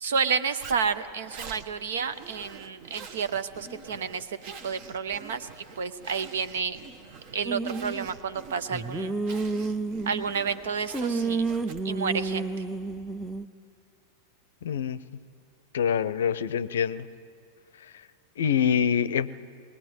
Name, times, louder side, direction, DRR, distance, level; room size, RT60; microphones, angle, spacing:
voice 1, 0.0-6.8 7.3-9.1 10.1-11.4 11.8-12.5, right 6 dB, 60° right, 12 dB, 0.9 m, -30 dB
Zipper (clothing), 0.6-12.1, right 5 dB, 45° right, 1.3 m, -46 dB
sound 1, 7.5-8.1 8.7-10.5 10.9-13.5, right 3 dB, 5° right, 0.7 m, -30 dB
voice 2, 14.6-15.0 15.7-17.1 18.4-19.3, left 7 dB, 60° left, 18 dB, 0.6 m, -25 dB
20.5 x 19.0 x 9.3 m, 2.4 s
figure-of-eight pair, 90°, 0 cm